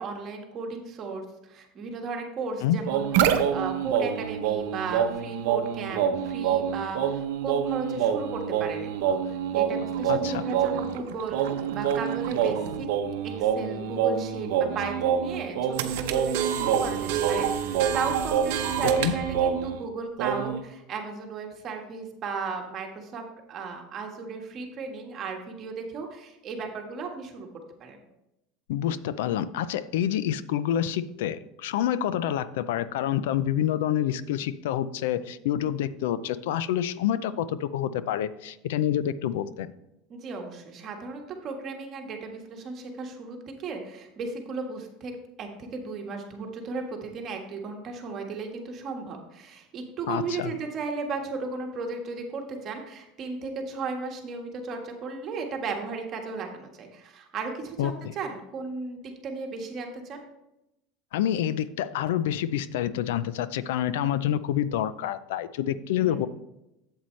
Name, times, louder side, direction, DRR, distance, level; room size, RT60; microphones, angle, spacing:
voice 1, 0.0-12.9 13.2-27.5 27.8-28.0 40.1-45.1 45.4-60.2 65.6-66.3, right 4 dB, 35° right, 2 dB, 1.5 m, -35 dB
sound 1, 2.9-19.8 20.2-20.6, right 8 dB, 75° right, 0.7 m, -26 dB
voice 2, 10.1-10.4 19.0-19.1 28.7-39.7 50.1-50.5 57.8-57.9 61.1-66.3, left 11 dB, 85° left, 16 dB, 0.4 m, -27 dB
8.2 x 7.8 x 3.2 m, 0.89 s
supercardioid pair, 130°, 0 cm